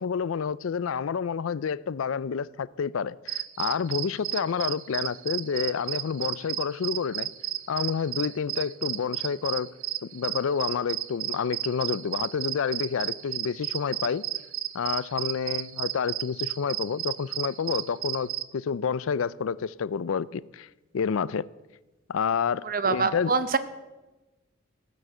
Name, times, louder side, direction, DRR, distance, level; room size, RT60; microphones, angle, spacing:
voice 1, 0.0-7.3 7.7-9.7 10.1-14.2 14.7-20.7 20.9-21.5 22.1-23.3, left 6 dB, 75° left, 0.4 m, -29 dB
sound 1, 3.3-18.4, right 14 dB, 85° right, 0.6 m, -33 dB
voice 2, 22.6-23.6, right 4 dB, 40° right, 0.8 m, -25 dB
15.5 x 9.4 x 6.6 m
head